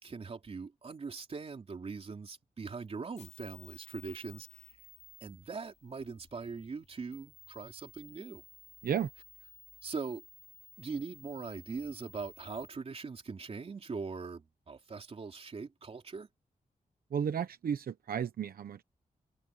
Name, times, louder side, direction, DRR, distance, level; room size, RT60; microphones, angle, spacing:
voice 1, 0.0-4.8 5.2-8.4 9.8-10.2 10.8-16.3, right 4 dB, 40° right, 3.5 m, -41 dB
sound 1, 3.1-12.7, left 5 dB, 50° left, 4.5 m, -56 dB
voice 2, 17.1-18.8, right 8 dB, 85° right, 1.0 m, -33 dB
wide cardioid pair, 165°, 15 cm